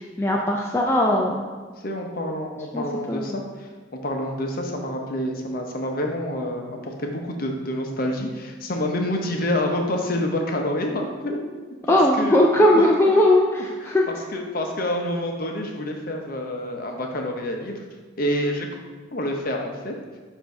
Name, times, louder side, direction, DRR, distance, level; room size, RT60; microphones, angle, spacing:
voice 1, 0.0-1.4 2.7-3.3 11.9-14.0, left 1 dB, 10° left, -2 dB, 0.3 m, -19 dB
voice 2, 1.8-3.7 4.0-11.4 11.9-12.4 12.8-13.1 13.8-17.8 18.2-18.7 19.1-19.9, left 1 dB, 45° left, 2 dB, 0.7 m, -27 dB
6.7 x 2.7 x 5.1 m, 1.4 s
head